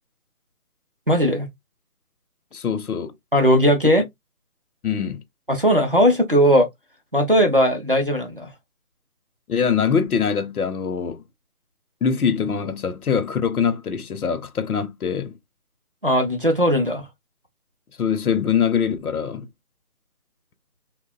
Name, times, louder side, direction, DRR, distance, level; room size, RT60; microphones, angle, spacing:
voice 1, 1.1-1.5 3.3-4.0 5.5-6.7 7.1-8.5 16.0-17.0, equal, 40° right, 0.4 m, -18 dB
voice 2, 2.5-3.1 4.8-5.2 9.5-11.2 12.0-15.3 18.0-19.5, left 7 dB, 75° left, 0.7 m, -23 dB
2.7 x 2.1 x 2.3 m
figure-of-eight pair, 160°, 44 cm